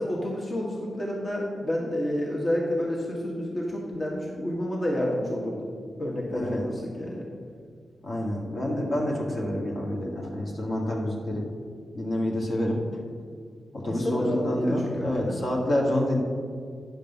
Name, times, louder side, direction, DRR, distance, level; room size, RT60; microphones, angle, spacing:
voice 1, 0.0-5.7 6.0-7.3 8.6-8.9 13.9-15.4, left 1 dB, 50° left, -3 dB, 1.8 m, -30 dB
voice 2, 6.3-6.6 8.0-11.5 11.9-12.8 13.7-16.2, left 1 dB, 65° left, -3 dB, 2.0 m, -28 dB
10.0 x 5.4 x 5.4 m, 2.1 s
supercardioid pair, 40°, 0 cm